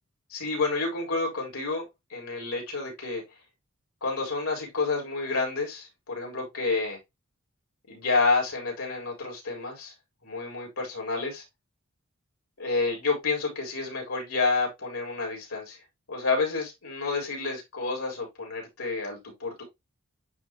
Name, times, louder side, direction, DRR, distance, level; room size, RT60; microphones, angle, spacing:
voice 1, 0.3-1.8 2.1-3.2 4.0-7.0 7.9-9.9 10.2-11.4 12.6-15.8 16.1-19.6, left 3 dB, 85° left, 4.0 m, -29 dB
9.8 x 3.6 x 2.9 m
head